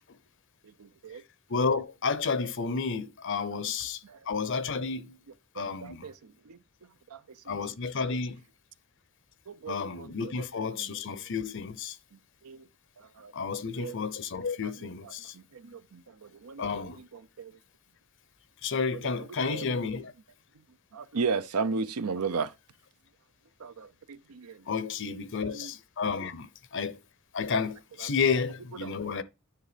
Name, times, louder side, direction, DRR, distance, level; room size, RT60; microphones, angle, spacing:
voice 1, 0.8-1.2 3.5-3.6 4.0-4.2 5.6-6.6 7.1-7.2 7.5-7.6 8.0-8.1 9.5-10.4 10.7-10.9 12.4-12.7 13.0-13.3 13.7-13.9 14.6-14.7 15.0-17.5 19.0-19.1 19.5-19.7 20.9-22.5 23.6-24.6 25.5-25.7 27.5-27.6 28.0-28.4 28.8-29.1, right 4 dB, 85° right, 0.7 m, -36 dB
voice 2, 1.5-5.2 5.5-6.1 7.5-8.4 9.7-12.0 13.3-15.3 16.6-17.0 18.6-20.1 24.7-27.0 27.3-29.2, left 5 dB, 55° left, 0.7 m, -31 dB
9.7 x 3.6 x 5.1 m
head